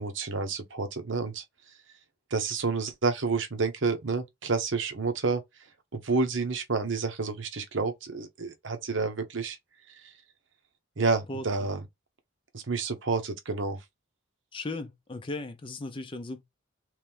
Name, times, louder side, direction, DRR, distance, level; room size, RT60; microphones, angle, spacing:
voice 1, 0.0-1.4 2.3-5.4 5.9-9.6 9.9-10.1 11.0-11.8 12.5-13.8, right 4 dB, 70° right, 0.9 m, -29 dB
voice 2, 14.5-16.4, left 2 dB, 25° left, 0.5 m, -36 dB
3.2 x 3.1 x 3.5 m
head